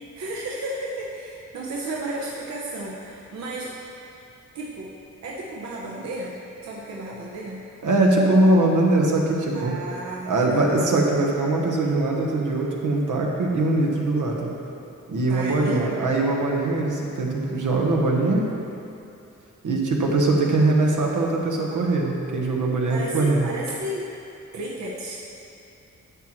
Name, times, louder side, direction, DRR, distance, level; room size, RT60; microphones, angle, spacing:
voice 1, 0.1-3.8 4.5-5.0 5.2-7.7 9.5-10.7 15.3-15.9 22.9-24.1 24.5-25.2, right 1 dB, 60° right, -4 dB, 0.8 m, -33 dB
voice 2, 7.8-9.7 10.2-14.5 15.1-18.4 19.6-23.5, right 2 dB, 75° right, -1 dB, 1.2 m, -21 dB
11.5 x 7.5 x 3.1 m, 2.7 s
wide cardioid pair, 170°, 31 cm